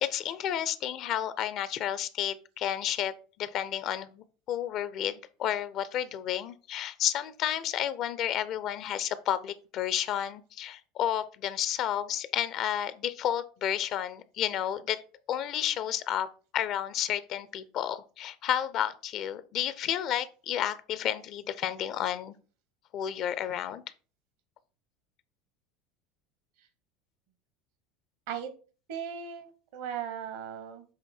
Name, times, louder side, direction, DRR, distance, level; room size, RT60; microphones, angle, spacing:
voice 1, 0.0-15.0 15.3-16.3 16.5-22.3 22.9-23.8, left 10 dB, 45° left, 0.5 m, -31 dB
voice 2, 28.9-30.8, right 8 dB, 60° right, 1.1 m, -37 dB
7.8 x 3.2 x 4.2 m
figure-of-eight pair, 75°, 0 cm